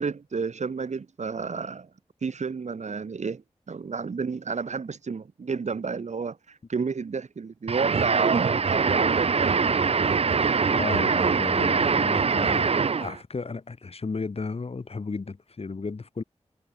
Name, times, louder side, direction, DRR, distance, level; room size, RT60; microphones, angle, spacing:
voice 1, 0.0-1.9 2.2-6.4 6.7-9.5, right 5 dB, 90° right, 3.3 m, -31 dB
sound 1, 7.7-13.2, right 5 dB, 60° right, 0.6 m, -23 dB
voice 2, 10.7-16.2, left 4 dB, 60° left, 2.1 m, -34 dB
wide cardioid pair, 70°, 12 cm